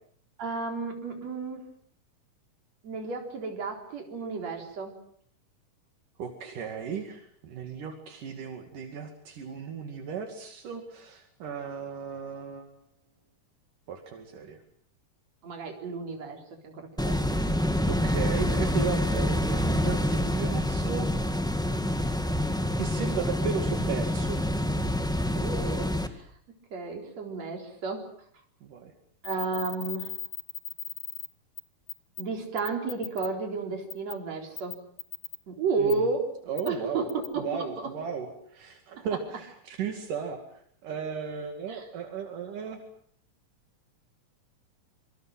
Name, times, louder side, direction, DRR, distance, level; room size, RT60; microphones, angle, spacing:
voice 1, 0.4-1.6 2.8-4.9 15.4-17.3 25.3-26.3 26.7-28.1 29.2-30.2 32.2-34.8 35.5-37.9 39.0-39.1 41.7-41.8, right 4 dB, 55° right, 3 dB, 5.0 m, -32 dB
voice 2, 6.2-12.7 13.9-14.6 17.9-21.1 22.8-24.4 28.6-28.9 35.8-36.1 36.5-37.1 37.4-42.8, right 6 dB, 75° right, 4 dB, 3.9 m, -35 dB
Machine Room Rotary Air Close, 17.0-26.1, left 1 dB, 5° left, 0.8 m, -27 dB
sound 1, 29.2-31.3 31.6-31.7 31.9-32.2 32.6-33.3 33.9-34.1 34.6-35.4 35.9-36.0 36.6-36.7 37.1-37.3, left 8 dB, 60° left, 3.0 m, -37 dB
26.5 x 24.5 x 7.6 m, 0.62 s
omnidirectional pair, 3.7 m